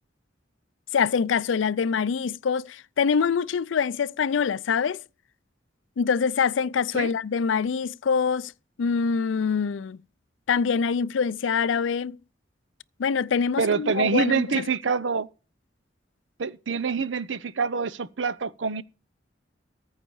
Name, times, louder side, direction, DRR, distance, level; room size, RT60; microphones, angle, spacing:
voice 1, 0.9-5.0 6.0-8.5 8.8-10.0 10.5-12.2 13.0-14.7, left 6 dB, 85° left, 0.4 m, -25 dB
voice 2, 13.6-15.3 16.4-18.8, right 5 dB, 80° right, 0.6 m, -26 dB
14.5 x 5.6 x 4.7 m
head